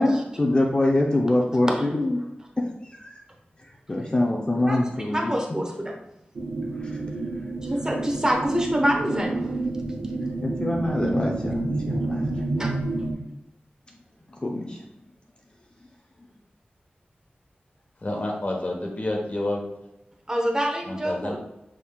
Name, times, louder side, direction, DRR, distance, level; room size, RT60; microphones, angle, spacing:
voice 1, 0.0-2.2 2.6-3.2 3.9-5.4 6.8-7.0 10.4-12.2 14.4-14.8, left 1 dB, 30° left, -1 dB, 0.7 m, -24 dB
voice 2, 4.6-5.9 7.6-9.6 11.9-12.9 20.3-21.4, equal, 20° right, 1 dB, 1.1 m, -27 dB
sound 1, 6.4-13.1, right 2 dB, 85° right, 0.7 m, -29 dB
voice 3, 18.0-19.6 20.9-21.4, left 1 dB, 45° left, 0 dB, 1.2 m, -29 dB
6.2 x 3.6 x 2.3 m, 0.89 s
wide cardioid pair, 70°, 4 cm